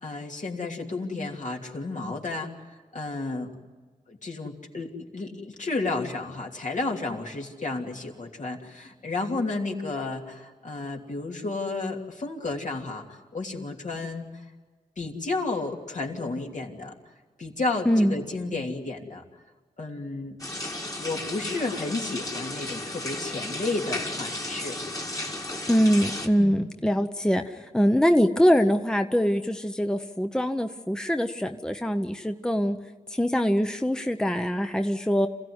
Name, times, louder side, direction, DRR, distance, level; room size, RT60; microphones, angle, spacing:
voice 1, 0.0-2.5 2.9-3.5 4.1-14.3 15.0-16.9 17.4-19.2 19.8-20.4 21.0-24.8 26.4-26.6, left 3 dB, 60° left, 0 dB, 3.1 m, -32 dB
sound 1, 20.4-26.3, left 1 dB, 25° left, 2.1 m, -34 dB
voice 2, 25.7-32.8 33.1-35.3, equal, 5° left, 7 dB, 0.9 m, -23 dB
27.0 x 16.0 x 9.7 m, 1.4 s
wide cardioid pair, 70°, 14 cm